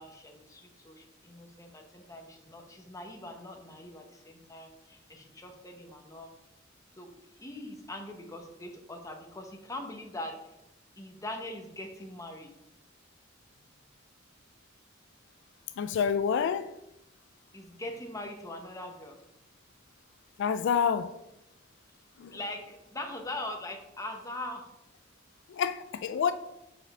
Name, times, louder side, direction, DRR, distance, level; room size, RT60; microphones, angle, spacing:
voice 1, 0.0-6.3 6.9-7.1 7.4-10.5 11.0-12.5 13.5-13.9 17.5-19.2 22.3-24.7 26.1-26.3, left 1 dB, 15° left, 1.0 m, -42 dB
voice 2, 15.8-16.7 20.4-21.1 22.2-22.3 25.5-26.3, left 7 dB, 65° left, 0.3 m, -27 dB
6.7 x 5.5 x 3.6 m
head